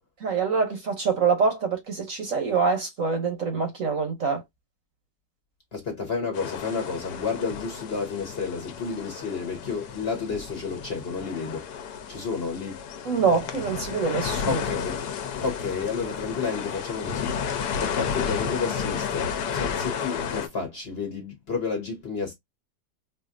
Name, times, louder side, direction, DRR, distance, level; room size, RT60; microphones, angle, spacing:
voice 1, 0.2-4.4 13.0-14.6, right 5 dB, 60° right, 1.0 m, -25 dB
voice 2, 5.7-11.6 12.1-12.8 14.4-15.0 15.4-17.3 17.7-22.3, left 5 dB, 40° left, 1.0 m, -31 dB
sound 1, 6.3-20.5, left 7 dB, 70° left, 1.2 m, -32 dB
4.4 x 2.5 x 2.5 m
omnidirectional pair, 1.9 m